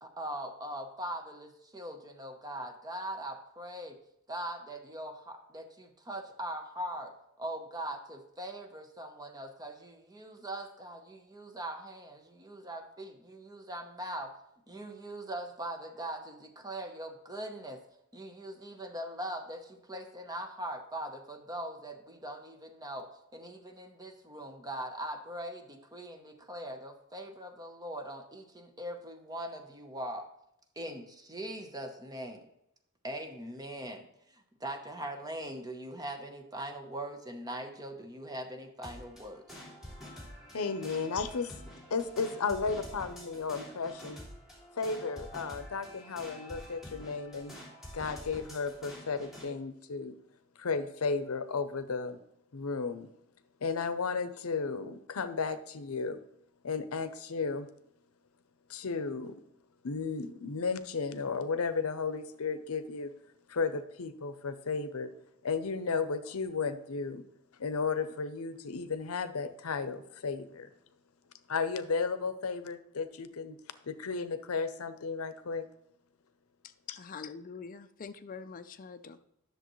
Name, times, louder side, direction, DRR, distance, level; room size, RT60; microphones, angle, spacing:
voice 1, 0.0-4.0 4.3-14.3 14.7-17.8 18.1-30.3 30.8-32.5 33.0-39.6, right 1 dB, 20° right, 4 dB, 0.9 m, -41 dB
sound 1, 38.8-49.5, equal, ahead, 2.5 m, -48 dB
voice 2, 40.5-41.6 41.9-44.2 44.8-47.6 47.9-50.1 50.6-52.2 52.5-53.1 53.6-56.2 56.6-57.7 58.7-59.4 59.8-63.1 63.5-65.1 65.4-67.2 67.6-70.7 71.5-73.6 73.8-75.7 76.9-77.0, left 4 dB, 80° left, 12 dB, 0.6 m, -34 dB
voice 3, 77.0-79.2, left 5 dB, 40° left, 9 dB, 0.4 m, -44 dB
10.5 x 6.7 x 3.1 m, 0.80 s
head